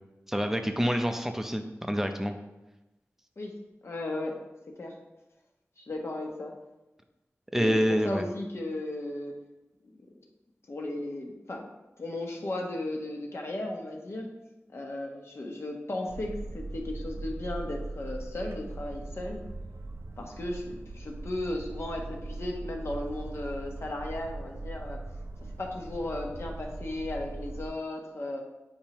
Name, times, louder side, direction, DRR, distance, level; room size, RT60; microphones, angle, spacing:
voice 1, 0.3-2.3 7.5-8.2, equal, 5° right, 6 dB, 0.6 m, -27 dB
voice 2, 3.8-4.3 4.8-4.9 5.8-6.5 7.5-7.8 8.0-9.3 9.8-10.1 10.7-11.7 12.0-14.3 14.7-19.4 20.2-25.0 25.6-28.4, left 1 dB, 60° left, 0 dB, 1.1 m, -35 dB
Boat Water vehicle, 16.1-27.7, right 2 dB, 60° right, 0.5 m, -40 dB
8.7 x 4.5 x 2.9 m, 1.0 s
wide cardioid pair, 95°, 5 cm